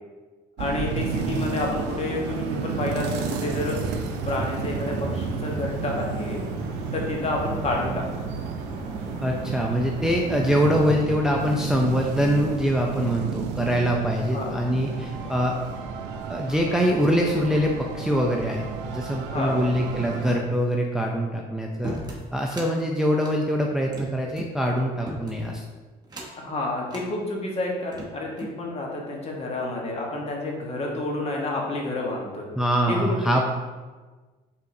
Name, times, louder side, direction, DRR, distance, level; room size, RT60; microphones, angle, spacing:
voice 1, 0.6-3.8 4.2-6.4 6.9-8.3 14.3-14.5 19.3-19.6 26.4-32.5 32.9-33.2, left 2 dB, 35° left, -1 dB, 1.1 m, -29 dB
sound 1, 0.6-20.4, right 5 dB, 85° right, 0.5 m, -32 dB
sound 2, 2.7-11.0, right 2 dB, 60° right, 1.4 m, -37 dB
voice 2, 9.2-15.5 16.3-22.0 22.3-25.6 32.6-33.4, equal, 5° right, 0 dB, 0.4 m, -24 dB
sound 3, 21.8-22.7 23.1-24.5 25.1-25.6 26.0-26.5 26.9-27.1 27.7-28.6, equal, 25° right, 0.9 m, -38 dB
5.3 x 3.7 x 2.6 m, 1.3 s
cardioid pair, 110°, 17 cm